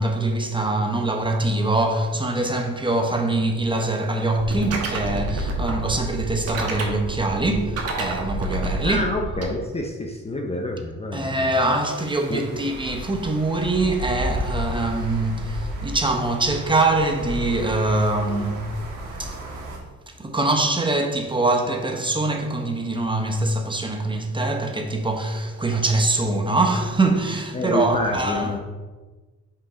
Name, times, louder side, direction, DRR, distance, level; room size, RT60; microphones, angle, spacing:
voice 1, 0.0-9.0 11.1-18.7 19.2-19.4 20.1-28.5, right 2 dB, 15° right, 0.9 m, -23 dB
sound 1, 4.4-9.4, right 3 dB, 55° right, 1.3 m, -28 dB
voice 2, 8.8-11.4 12.3-12.7 27.5-28.6, left 1 dB, 20° left, 0.6 m, -27 dB
sound 2, 11.7-19.8, equal, 80° right, 1.3 m, -33 dB
5.4 x 5.2 x 3.7 m
cardioid pair, 90°, 30 cm